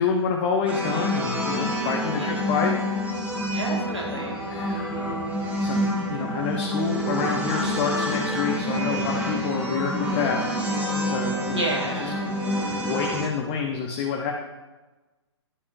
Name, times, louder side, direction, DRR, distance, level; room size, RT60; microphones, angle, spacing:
voice 1, 0.0-2.7 4.5-5.1 5.6-10.4 11.0-11.6 11.9-12.1 12.7-14.3, left 6 dB, 30° left, 1 dB, 0.7 m, -28 dB
sound 1, 0.7-13.2, equal, 10° right, 1.6 m, -27 dB
voice 2, 2.1-2.8 3.4-4.4 11.5-12.4, right 1 dB, 85° right, -1 dB, 2.3 m, -31 dB
10.5 x 8.2 x 2.6 m, 1.2 s
figure-of-eight pair, 120°, 15 cm